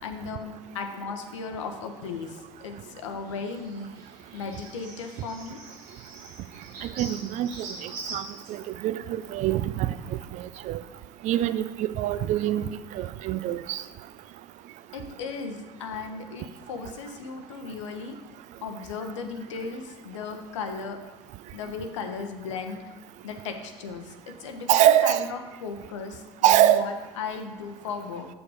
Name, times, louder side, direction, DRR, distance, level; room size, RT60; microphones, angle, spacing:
voice 1, 0.0-3.9 4.3-5.6 14.9-18.2 18.6-21.0 21.5-22.8 23.2-26.2 26.5-28.3, left 5 dB, 80° left, 5 dB, 0.8 m, -36 dB
sound 1, 2.0-8.5, right 3 dB, 70° right, 2.3 m, -44 dB
voice 2, 6.8-8.2 8.5-9.9 10.4-10.8 11.2-13.8 24.7-25.3 26.4-26.9, right 12 dB, 50° right, 13 dB, 0.5 m, -24 dB
7.1 x 6.2 x 4.8 m, 1.2 s
hypercardioid pair, 65°, 15 cm